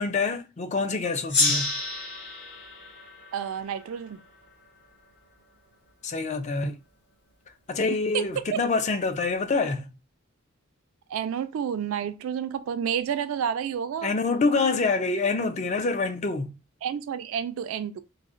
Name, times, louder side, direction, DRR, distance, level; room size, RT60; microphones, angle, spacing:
voice 1, 0.0-1.7 6.0-6.8 7.7-9.9 14.0-16.6, left 3 dB, 35° left, 0.4 m, -26 dB
Gong, 1.3-4.4, left 3 dB, 55° left, 1.5 m, -29 dB
voice 2, 3.3-4.2 8.1-8.6 11.1-14.1 16.8-18.0, right 8 dB, 80° right, 0.3 m, -30 dB
3.9 x 2.0 x 2.5 m
head